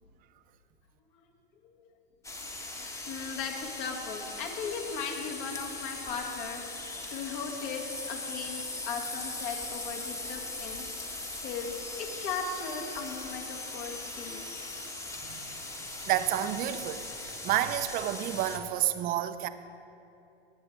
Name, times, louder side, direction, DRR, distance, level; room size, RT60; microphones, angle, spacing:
sound 1, 2.2-18.6, left 2 dB, 10° left, 1.2 m, -39 dB
voice 1, 2.6-11.7 12.0-14.4, left 5 dB, 50° left, 1 dB, 2.1 m, -38 dB
voice 2, 16.0-19.5, right 12 dB, 30° right, 12 dB, 0.6 m, -30 dB
18.5 x 8.9 x 3.4 m, 2.8 s
hypercardioid pair, 105°, 31 cm